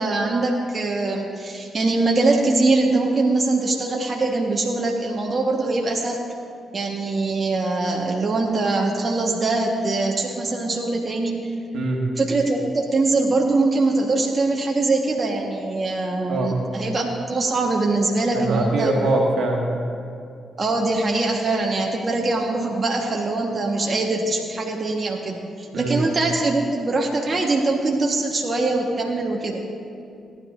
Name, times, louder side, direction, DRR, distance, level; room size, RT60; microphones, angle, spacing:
voice 1, 0.0-6.2 6.7-11.4 12.2-19.0 20.6-29.6, right 2 dB, 45° right, 0 dB, 1.3 m, -22 dB
voice 2, 11.7-12.0 16.3-16.6 18.3-19.7 25.7-26.0, right 2 dB, 70° right, 0 dB, 1.7 m, -22 dB
18.0 x 11.0 x 2.6 m, 2.5 s
hypercardioid pair, 40°, 0 cm